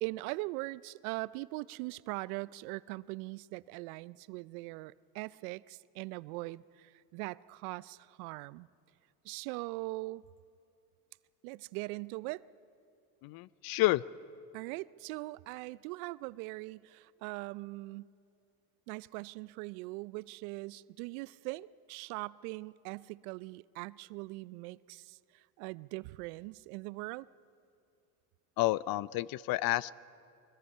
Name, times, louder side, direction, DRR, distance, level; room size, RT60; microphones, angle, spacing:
voice 1, 0.0-8.7 9.2-10.2 11.4-12.5 14.5-18.1 18.9-27.3, right 22 dB, 70° right, 20 dB, 0.6 m, -41 dB
voice 2, 13.2-14.0 28.6-29.9, left 18 dB, 55° left, 21 dB, 0.6 m, -30 dB
24.0 x 21.0 x 5.6 m, 2.5 s
hypercardioid pair, 80°, 45 cm